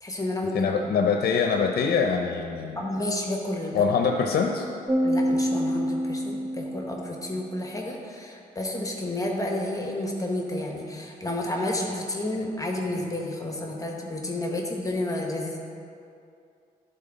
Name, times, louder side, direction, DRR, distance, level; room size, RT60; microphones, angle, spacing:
voice 1, 0.0-0.9 2.8-3.9 5.0-15.6, left 1 dB, 20° left, 0 dB, 1.2 m, -31 dB
voice 2, 0.5-2.8 3.7-4.6, left 5 dB, 70° left, 3 dB, 0.6 m, -24 dB
sound 1, 4.9-7.4, equal, 20° right, 0.4 m, -27 dB
11.5 x 3.9 x 4.0 m, 2.5 s
cardioid pair, 70°, 16 cm